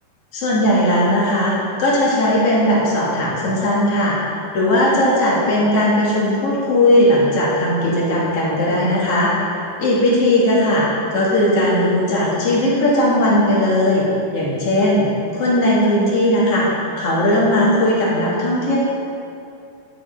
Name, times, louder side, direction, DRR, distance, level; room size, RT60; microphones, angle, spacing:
voice 1, 0.3-1.5 1.8-14.1 14.3-15.1 15.3-18.8, left 1 dB, 50° left, -6 dB, 2.2 m, -17 dB
9.8 x 7.5 x 3.8 m, 2.6 s
omnidirectional pair, 4.5 m